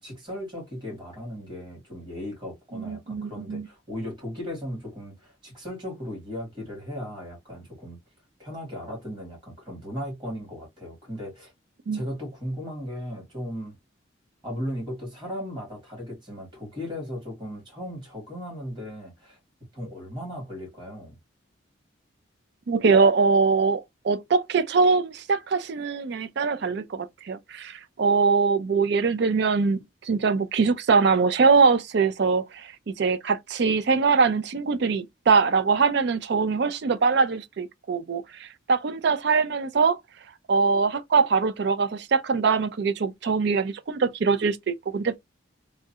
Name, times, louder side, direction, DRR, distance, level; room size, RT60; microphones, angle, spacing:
voice 1, 0.0-8.0 8.4-11.5 11.9-13.8 14.4-19.4 19.7-21.2, equal, 25° right, 1.8 m, -36 dB
voice 2, 2.7-3.7 11.9-12.0 22.7-29.8 30.1-40.0 40.5-45.2, right 4 dB, 55° right, 0.4 m, -23 dB
3.1 x 2.4 x 2.7 m
head